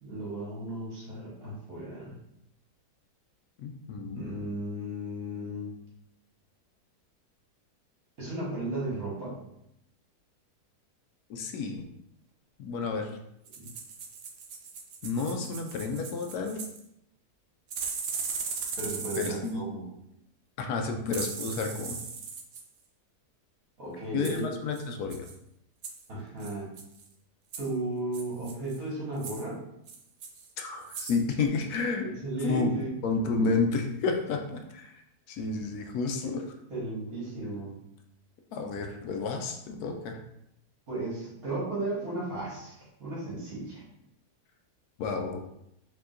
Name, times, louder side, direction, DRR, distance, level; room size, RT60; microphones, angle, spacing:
voice 1, 0.0-2.2 4.1-5.7 8.2-9.4 13.6-13.7 18.8-19.9 23.8-24.5 26.1-26.7 27.6-29.6 32.0-32.9 33.3-33.5 36.7-37.8 40.9-43.8, right 2 dB, 60° right, -6 dB, 2.0 m, -35 dB
voice 2, 3.6-4.2 11.3-11.8 12.6-13.1 15.0-16.6 19.1-19.7 20.6-22.0 24.1-25.2 30.6-32.1 32.4-32.7 33.0-35.0 35.3-36.4 38.5-40.2 45.0-45.4, left 4 dB, 75° left, 4 dB, 1.1 m, -31 dB
sound 1, 13.5-16.8 17.7-19.5 21.1-22.6 24.2-24.4 24.7-24.8 25.1-25.3 25.8-26.1 26.4-27.1 27.5-27.7 28.1-28.8 29.2-29.4 29.9-30.5 30.8-31.2 31.5-31.6, right 5 dB, 80° right, 0.5 m, -38 dB
4.7 x 3.6 x 2.5 m, 0.81 s
omnidirectional pair, 1.7 m